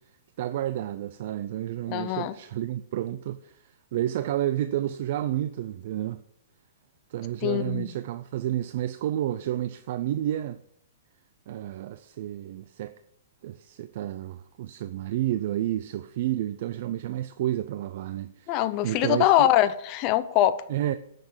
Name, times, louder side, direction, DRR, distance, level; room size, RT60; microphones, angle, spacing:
voice 1, 0.4-6.2 7.1-10.6 11.5-12.9 13.4-19.5 20.7-20.9, right 12 dB, 50° right, 0.5 m, -30 dB
voice 2, 1.9-2.3 7.4-7.9 18.5-20.6, left 13 dB, 30° left, 0.6 m, -23 dB
9.7 x 6.6 x 7.0 m
hypercardioid pair, 165°, 0 cm